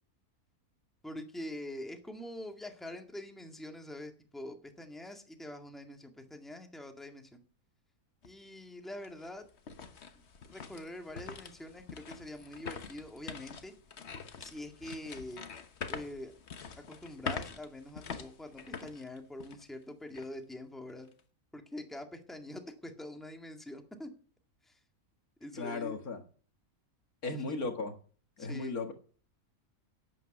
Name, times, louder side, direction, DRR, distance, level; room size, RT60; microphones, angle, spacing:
voice 1, 1.0-7.4 8.2-9.4 10.4-13.7 14.4-15.5 15.9-16.3 16.9-21.1 21.5-24.1 24.6-24.8 25.4-26.0 27.3-27.6 28.4-28.7, left 1 dB, ahead, 1.9 m, -45 dB
sound 1, 8.2-8.3 8.8-19.8 20.1-20.3 20.9-21.2, left 5 dB, 50° left, 1.3 m, -44 dB
voice 2, 25.5-26.2 27.2-27.9 28.4-28.9, left 3 dB, 75° left, 2.2 m, -36 dB
11.0 x 9.2 x 9.0 m
omnidirectional pair, 1.5 m